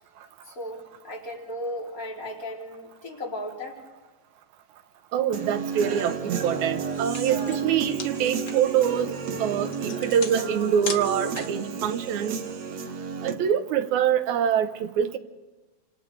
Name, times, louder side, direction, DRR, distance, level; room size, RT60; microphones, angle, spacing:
voice 1, 0.5-3.8, left 1 dB, 30° left, 3.7 m, -36 dB
voice 2, 5.1-12.4 13.2-15.2, right 9 dB, 80° right, 2.4 m, -25 dB
Human voice / Guitar, 5.3-13.3, right 5 dB, 65° right, 2.4 m, -32 dB
sound 1, 6.5-6.6 6.9-11.7, left 4 dB, 55° left, 0.8 m, -38 dB
29.0 x 26.5 x 3.4 m
omnidirectional pair, 3.3 m